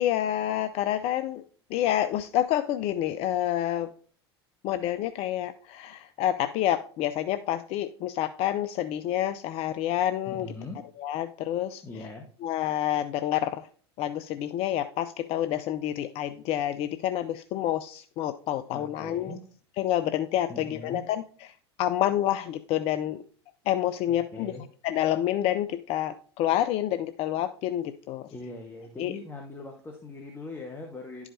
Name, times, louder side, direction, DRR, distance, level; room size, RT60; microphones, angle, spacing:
voice 1, 0.0-1.4 1.7-3.9 4.6-10.5 11.0-11.8 12.4-13.7 14.0-19.4 19.8-21.2 21.8-23.2 23.7-24.5 24.8-28.3 29.0-29.1, left 12 dB, 50° left, 11 dB, 0.5 m, -28 dB
voice 2, 10.3-10.8 11.8-12.3 18.7-19.4 20.5-21.0 24.1-24.7 28.3-31.3, left 2 dB, 15° left, 3 dB, 1.1 m, -41 dB
11.0 x 4.9 x 2.7 m, 0.44 s
hypercardioid pair, 80°, 14 cm